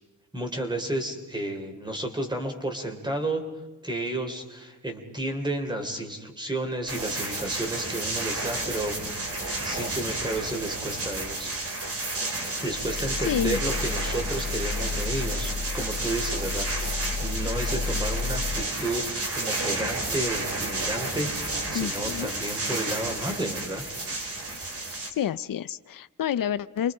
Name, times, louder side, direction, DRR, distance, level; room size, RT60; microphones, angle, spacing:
voice 1, 0.3-3.4 3.8-9.3 9.6-11.5 12.6-23.8, right 1 dB, 15° right, 4 dB, 3.6 m, -32 dB
sound 1, 6.9-25.1, right 2 dB, 45° right, 3.8 m, -31 dB
sound 2, 12.7-18.6, left 4 dB, 60° left, 1.3 m, -32 dB
voice 2, 13.2-13.6 21.7-22.3 25.1-26.9, left 10 dB, 85° left, 15 dB, 0.7 m, -29 dB
29.0 x 24.5 x 5.0 m, 1.1 s
wide cardioid pair, 170°, 33 cm